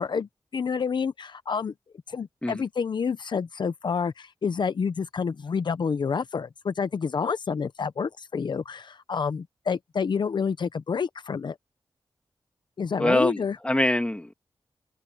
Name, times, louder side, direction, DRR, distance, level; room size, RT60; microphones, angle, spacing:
voice 1, 0.0-1.7 2.1-11.6 12.8-13.6, left 6 dB, 65° left, 0.8 m, -28 dB
voice 2, 13.0-14.3, left 1 dB, 15° left, 2.1 m, -24 dB
wide cardioid pair, 90°, 8 cm